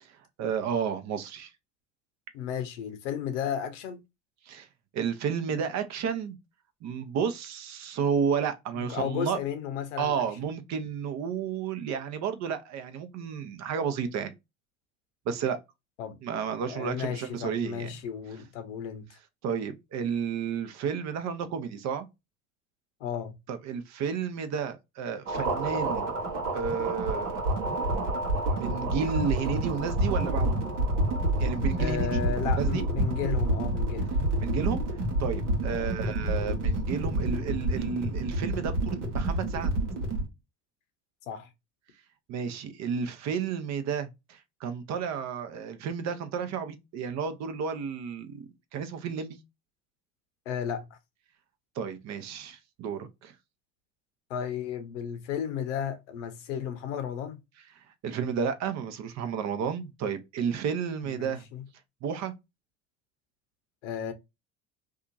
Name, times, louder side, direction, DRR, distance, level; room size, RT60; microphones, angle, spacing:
voice 1, 0.1-1.5 4.5-4.7 4.9-6.4 6.8-9.4 10.0-14.3 15.3-15.6 16.2-17.9 19.4-22.1 23.5-26.1 26.5-27.4 28.5-30.6 31.4-32.2 32.6-32.9 34.4-34.8 35.2-39.7 42.3-49.4 51.8-53.3 58.0-61.5 62.0-62.3, right 7 dB, 50° right, 0.7 m, -32 dB
voice 2, 2.3-4.0 8.7-10.2 16.0-16.2 16.7-19.2 23.0-23.3 31.8-34.1 35.7-35.9 41.3-41.5 50.5-50.9 54.3-57.4 61.0-61.7 63.8-64.1, left 8 dB, 80° left, 0.7 m, -34 dB
sound 1, 25.3-40.2, right 1 dB, 80° right, 1.1 m, -28 dB
2.7 x 2.3 x 2.4 m
hypercardioid pair, 75°, 36 cm